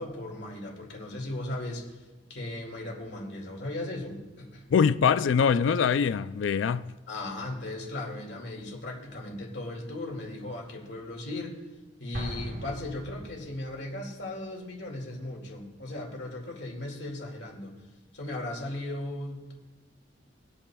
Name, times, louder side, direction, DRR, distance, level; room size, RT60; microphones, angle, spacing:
voice 1, 0.0-4.7 7.1-11.6 12.0-17.7 18.1-19.5, left 1 dB, 60° left, 2.3 m, -37 dB
voice 2, 4.7-6.9, left 6 dB, 80° left, 0.4 m, -23 dB
Explosion, 12.1-13.8, right 1 dB, 45° right, 1.5 m, -40 dB
24.0 x 8.5 x 2.3 m
head